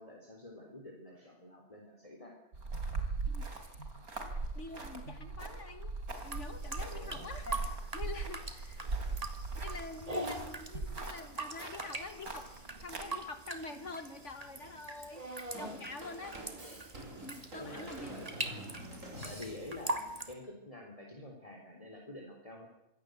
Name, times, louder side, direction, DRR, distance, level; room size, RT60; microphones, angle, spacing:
voice 1, 0.0-2.4 6.9-7.3 8.8-8.9 10.2-10.4 17.6-18.3 19.2-22.7, left 1 dB, 25° left, 0 dB, 3.9 m, -48 dB
sound 1, 2.5-13.0, right 3 dB, 85° right, 4.0 m, -40 dB
voice 2, 3.3-3.9 4.5-5.9 6.2-7.6 7.9-8.9 9.6-16.6 17.2-18.2, left 3 dB, 55° left, 9 dB, 1.8 m, -46 dB
sound 2, 6.2-20.3, right 1 dB, 25° right, 2.5 m, -43 dB
Drum kit / Drum, 15.5-19.9, right 1 dB, 60° right, 6.4 m, -47 dB
25.0 x 17.5 x 8.0 m, 0.91 s
omnidirectional pair, 1.5 m